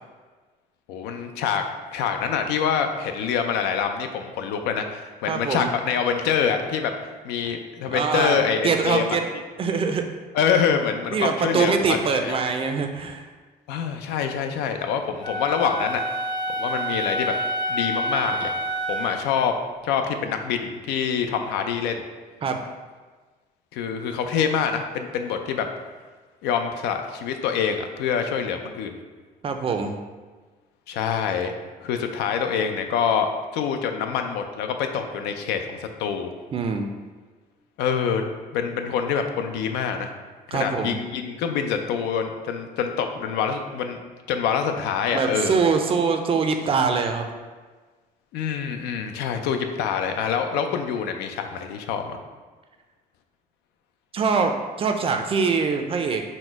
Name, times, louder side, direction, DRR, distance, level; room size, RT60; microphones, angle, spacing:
voice 1, 0.9-1.6 1.9-6.9 7.2-9.2 10.3-12.5 13.7-16.0 16.6-17.3 17.7-18.6 18.9-19.6 19.8-22.0 23.7-25.7 26.4-28.9 30.9-31.5 31.8-36.3 37.8-38.3 38.5-40.1 40.5-44.0 44.3-45.5 48.3-52.2, left 7 dB, 90° left, 6 dB, 0.4 m, -25 dB
voice 2, 5.3-5.7 7.9-9.2 9.6-10.1 11.1-13.2 22.4-22.6 29.4-29.9 36.5-36.9 40.5-41.0 45.1-47.3 54.1-56.2, right 5 dB, 35° right, 5 dB, 0.4 m, -23 dB
Wind instrument woodwind instrument, 15.2-19.3, equal, 25° left, 0.5 m, -28 dB
4.2 x 2.1 x 4.4 m, 1.4 s
cardioid pair, 110°, 17 cm